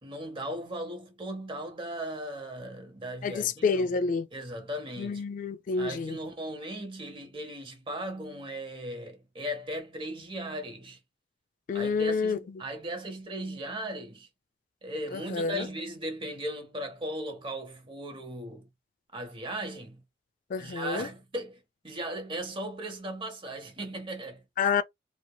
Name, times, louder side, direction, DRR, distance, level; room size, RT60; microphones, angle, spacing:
voice 1, 0.0-3.9 4.3-5.2 5.7-11.0 11.7-14.3 14.8-18.7 19.1-20.0 20.6-24.4, right 1 dB, 30° right, 0.9 m, -37 dB
voice 2, 3.2-4.3 5.0-6.2 11.7-12.6 15.1-15.7 20.5-21.1 24.6-24.8, left 5 dB, 45° left, 0.3 m, -28 dB
2.8 x 2.8 x 2.2 m
head